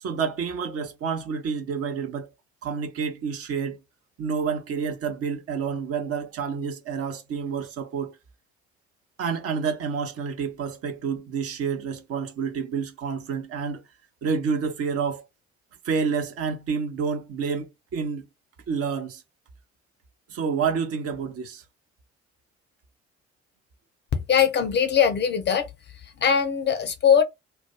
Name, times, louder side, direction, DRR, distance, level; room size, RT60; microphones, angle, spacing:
voice 1, 0.0-2.3 2.6-3.8 4.2-8.2 9.2-13.8 14.2-15.2 15.8-18.2 18.7-19.2 20.3-21.6, right 6 dB, 40° right, 0.6 m, -29 dB
voice 2, 24.1-25.7 26.2-27.2, left 7 dB, 30° left, 0.5 m, -21 dB
2.4 x 2.2 x 2.8 m
figure-of-eight pair, 45°, 35 cm